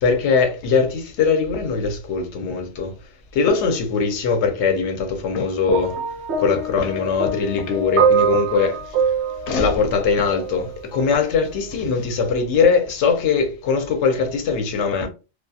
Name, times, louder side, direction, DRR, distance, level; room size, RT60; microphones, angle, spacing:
voice 1, 0.0-2.9 3.3-6.0 6.4-8.8 9.5-15.1, left 5 dB, 70° left, 0.9 m, -21 dB
sound 1, 5.7-10.8 11.7-11.9, right 5 dB, 70° right, 0.8 m, -23 dB
2.3 x 2.3 x 2.6 m
omnidirectional pair, 1.3 m